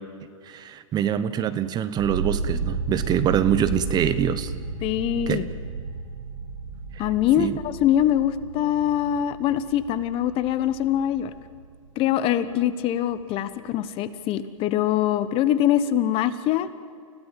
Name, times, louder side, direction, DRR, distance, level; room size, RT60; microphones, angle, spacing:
voice 1, 0.4-4.5 5.3-5.4 7.0-7.1 7.4-7.6, right 9 dB, 25° right, 13 dB, 1.0 m, -24 dB
sound 1, 2.0-12.0 12.3-13.0, right 4 dB, 85° right, 3.4 m, -33 dB
voice 2, 4.8-5.5 7.0-11.3 11.9-16.7, left 11 dB, 35° left, 14 dB, 1.2 m, -23 dB
30.0 x 16.5 x 7.6 m, 2.2 s
hypercardioid pair, 125°, 17 cm